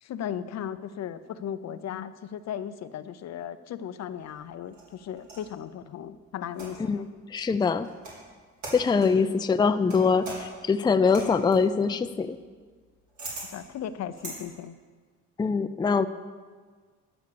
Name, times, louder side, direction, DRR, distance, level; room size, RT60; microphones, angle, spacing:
voice 1, 0.0-7.0 9.0-9.2 13.5-14.8, left 9 dB, 60° left, 13 dB, 0.6 m, -36 dB
sound 1, 4.2-5.5 6.5-7.0 7.8-8.2 8.6-9.2 9.9-14.4, right 2 dB, 70° right, 3.9 m, -42 dB
voice 2, 7.3-7.9 8.7-12.4 15.4-16.1, left 5 dB, 15° left, 10 dB, 0.4 m, -23 dB
11.0 x 7.0 x 6.8 m, 1.5 s
cardioid pair, 90°, 30 cm